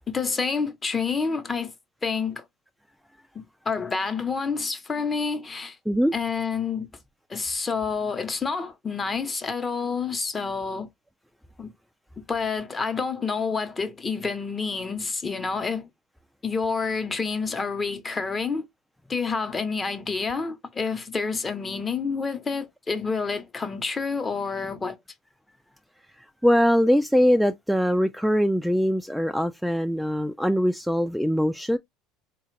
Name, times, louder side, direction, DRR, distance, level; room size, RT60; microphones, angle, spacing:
voice 1, 0.1-1.7 2.0-2.4 3.3-5.8 6.1-6.9 7.3-10.9 11.6-11.7 12.3-15.9 16.4-18.6 19.1-25.0, left 5 dB, 25° left, 0.9 m, -28 dB
voice 2, 26.1-31.8, equal, ahead, 0.3 m, -22 dB
4.1 x 2.3 x 3.2 m
supercardioid pair, 115°, 0 cm